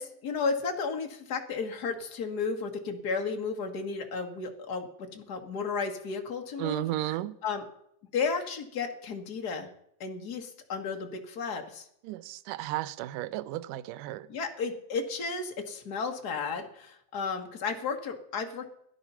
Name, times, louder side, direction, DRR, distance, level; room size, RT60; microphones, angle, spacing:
voice 1, 0.0-7.6 8.1-9.7 10.0-11.9 14.3-18.7, left 5 dB, 45° left, 1.3 m, -33 dB
voice 2, 6.6-7.4 12.1-14.3, right 15 dB, 75° right, 2.1 m, -34 dB
16.5 x 11.0 x 5.6 m
omnidirectional pair, 4.1 m